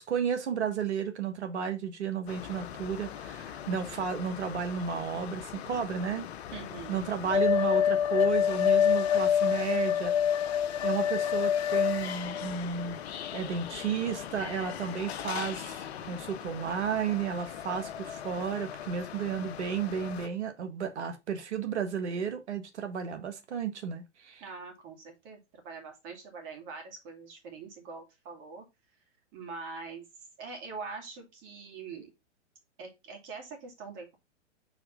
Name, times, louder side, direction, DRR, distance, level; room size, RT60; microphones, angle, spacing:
voice 1, 0.0-6.3 6.9-10.2 10.8-13.0 13.3-24.4, right 7 dB, 70° right, 1.5 m, -33 dB
sound 1, 2.3-20.3, left 9 dB, 60° left, 0.7 m, -31 dB
voice 2, 6.5-7.0 24.4-28.6 29.3-30.0 30.4-32.1 32.8-34.1, right 4 dB, 35° right, 2.5 m, -43 dB
5.0 x 4.1 x 5.5 m
hypercardioid pair, 120°, 36 cm